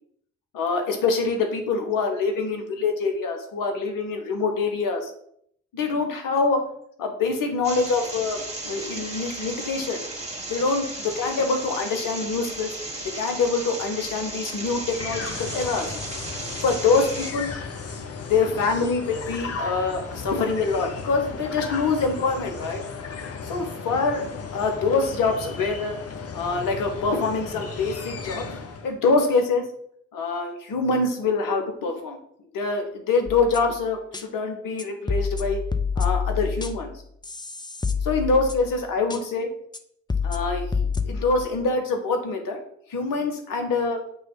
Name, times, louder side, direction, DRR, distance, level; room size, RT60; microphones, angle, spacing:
voice 1, 0.5-5.1 5.7-6.6 7.0-10.0 10.5-12.8 13.1-15.9 16.6-17.6 18.3-22.8 23.4-24.2 24.5-26.0 26.3-28.4 28.8-29.6 30.1-32.2 32.5-35.6 36.0-36.9 38.0-39.5 40.2-40.7 41.0-42.6 42.9-44.0, left 4 dB, 75° left, 4 dB, 1.1 m, -25 dB
sound 1, 7.6-17.3, right 2 dB, 20° right, 1.8 m, -35 dB
sound 2, 14.7-29.0, left 4 dB, 45° left, 0.9 m, -35 dB
sound 3, 33.3-33.7 34.1-34.2 34.8-36.9 37.2-38.8 39.1-39.2 39.7-39.8 40.1-41.5, left 5 dB, 15° left, 0.5 m, -28 dB
6.7 x 3.1 x 4.5 m, 0.68 s
hypercardioid pair, 40°, 33 cm